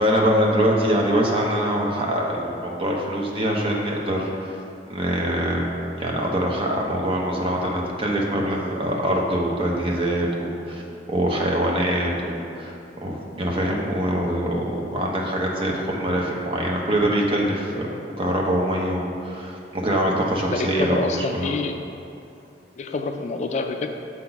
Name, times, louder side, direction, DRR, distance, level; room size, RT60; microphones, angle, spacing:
voice 1, 0.0-4.6 4.9-5.7 6.0-10.8 11.1-21.6, equal, 30° right, -1 dB, 0.9 m, -24 dB
voice 2, 20.5-21.8 22.8-23.9, left 3 dB, 40° left, 6 dB, 0.3 m, -27 dB
7.3 x 4.0 x 5.8 m, 2.6 s
head